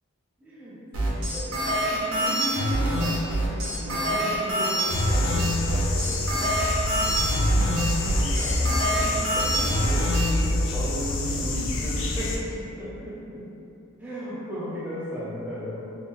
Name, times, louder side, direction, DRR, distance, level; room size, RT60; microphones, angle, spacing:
voice 1, 0.4-6.6 7.0-13.5 14.0-15.9, equal, 5° right, -9 dB, 0.7 m, -35 dB
sound 1, 0.9-10.3, equal, 80° right, 0.8 m, -25 dB
sound 2, 4.9-12.4, left 2 dB, 55° left, 0.4 m, -27 dB
2.9 x 2.8 x 3.7 m, 2.7 s
head